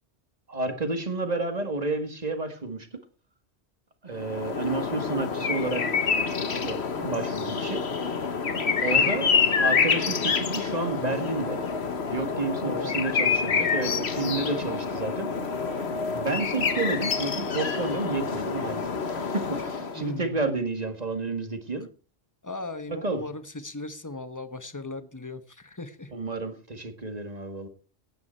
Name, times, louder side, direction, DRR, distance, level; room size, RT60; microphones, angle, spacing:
voice 1, 0.5-2.9 4.0-5.9 6.5-7.8 8.8-9.3 9.6-11.6 12.1-15.3 16.1-21.9 22.9-23.2 26.1-27.7, right 3 dB, 35° right, 7 dB, 2.0 m, -31 dB
sound 1, 4.2-20.1, left 5 dB, 70° left, 1.5 m, -27 dB
voice 2, 12.6-13.0 20.0-20.4 22.4-26.1, left 2 dB, 15° left, 10 dB, 1.1 m, -37 dB
15.5 x 9.5 x 4.5 m, 0.38 s
omnidirectional pair, 1.1 m